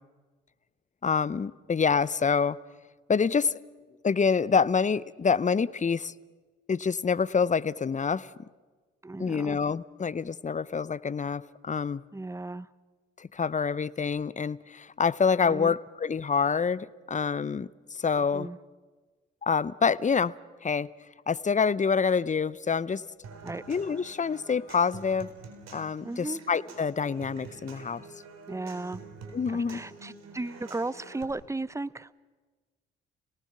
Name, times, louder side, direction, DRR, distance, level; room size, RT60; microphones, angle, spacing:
voice 1, 1.0-2.6 3.1-3.5 4.0-6.1 6.7-8.5 9.2-12.0 13.2-18.5 19.4-20.3 20.6-20.9 21.3-23.0 23.7-25.3 25.7-28.0 29.3-29.8, left 5 dB, 25° left, 19 dB, 0.7 m, -27 dB
voice 2, 9.0-9.6 12.1-12.7 15.4-15.7 18.3-18.6 23.4-23.6 26.0-26.4 28.5-29.0 29.5-32.1, right 2 dB, 10° right, 19 dB, 0.8 m, -35 dB
Human voice / Acoustic guitar / Percussion, 23.2-31.2, right 4 dB, 60° right, 4.1 m, -47 dB
29.5 x 18.5 x 6.0 m, 1.4 s
hypercardioid pair, 45°, 29 cm